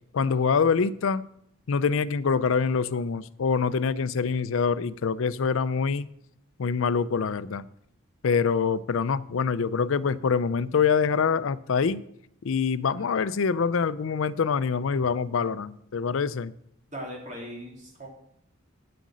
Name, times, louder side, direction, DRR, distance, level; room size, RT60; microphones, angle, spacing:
voice 1, 0.1-1.2 1.7-6.1 6.6-7.6 8.2-12.0 12.4-16.5, left 5 dB, 75° left, 16 dB, 0.5 m, -25 dB
voice 2, 16.9-18.1, equal, 35° right, -1 dB, 2.9 m, -39 dB
9.4 x 7.9 x 6.2 m, 0.74 s
head